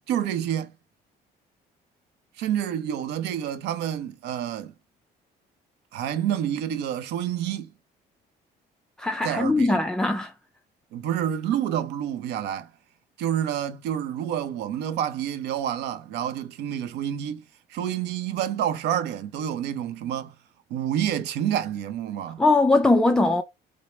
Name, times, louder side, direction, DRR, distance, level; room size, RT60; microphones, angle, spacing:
voice 1, 0.1-0.7 2.4-4.7 5.9-7.7 9.2-9.8 10.9-12.7 13.2-17.4 17.7-20.3 20.7-22.4, right 10 dB, 85° right, 0.7 m, -28 dB
voice 2, 9.0-10.3 22.4-23.4, left 2 dB, 5° left, 0.3 m, -20 dB
5.0 x 2.0 x 4.3 m
cardioid pair, 110°, 17 cm